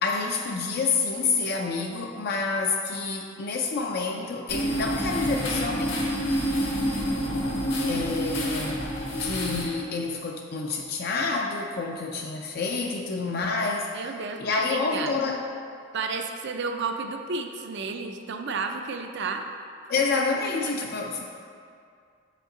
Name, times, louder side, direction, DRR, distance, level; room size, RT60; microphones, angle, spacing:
voice 1, 0.0-6.1 7.9-8.9 9.2-14.1 14.4-15.4 19.9-21.2, left 4 dB, 50° left, 1 dB, 0.4 m, -28 dB
sound 1, 4.5-9.6, equal, 75° left, 1.5 m, -28 dB
voice 2, 13.9-15.1 15.9-19.4 19.8-19.9, right 4 dB, 60° right, 5 dB, 0.5 m, -32 dB
7.2 x 5.3 x 3.8 m, 2.3 s
head